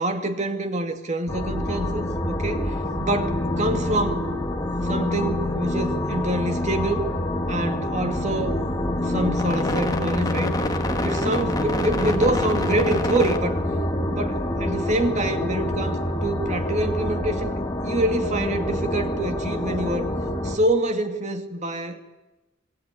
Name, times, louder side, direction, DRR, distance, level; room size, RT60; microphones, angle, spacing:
voice 1, 0.0-4.2 4.8-7.1 7.5-8.6 9.0-10.5 11.0-13.6 14.2-20.1 20.4-22.0, right 1 dB, 35° right, 6 dB, 2.3 m, -26 dB
sound 1, 1.3-20.6, left 1 dB, 20° left, 2.1 m, -26 dB
26.0 x 24.0 x 9.6 m, 1.1 s
head